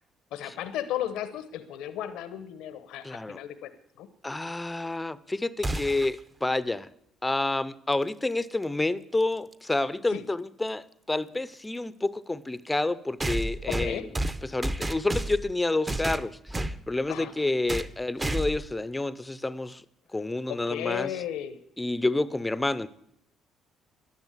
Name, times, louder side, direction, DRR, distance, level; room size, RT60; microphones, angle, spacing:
voice 1, 0.3-3.7 4.0-4.1 10.1-10.2 13.7-14.1 17.1-17.3 20.5-21.6, left 11 dB, 85° left, 0.9 m, -34 dB
voice 2, 3.0-3.4 4.2-6.9 7.2-14.1 14.4-19.8 20.1-21.1 21.8-22.9, left 2 dB, 15° left, 0.6 m, -29 dB
sound 1, 5.6-6.2 8.3-8.4 9.5-9.6 13.2-15.5 15.9-16.8 17.7-17.9 18.2-18.7, right 1 dB, 20° right, 0.7 m, -31 dB
12.0 x 10.5 x 8.2 m
cardioid pair, 100°, 0 cm